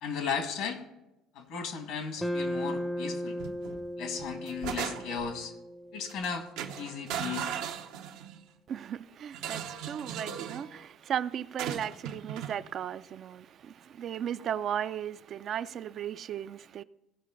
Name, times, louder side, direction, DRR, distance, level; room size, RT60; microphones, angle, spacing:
voice 1, 0.0-0.8 1.4-3.4 4.0-5.5 5.9-6.4 6.8-7.5, left 6 dB, 75° left, 1.8 m, -35 dB
sound 1, 2.2-6.5, left 1 dB, 10° left, 0.5 m, -36 dB
sound 2, 3.4-3.8 4.2-5.3 6.1-6.3 6.6-8.4 9.3-10.7 11.6-12.6, right 8 dB, 85° right, 0.9 m, -37 dB
voice 2, 8.7-16.8, right 9 dB, 50° right, 0.4 m, -36 dB
16.5 x 5.6 x 3.8 m
supercardioid pair, 95°, 0 cm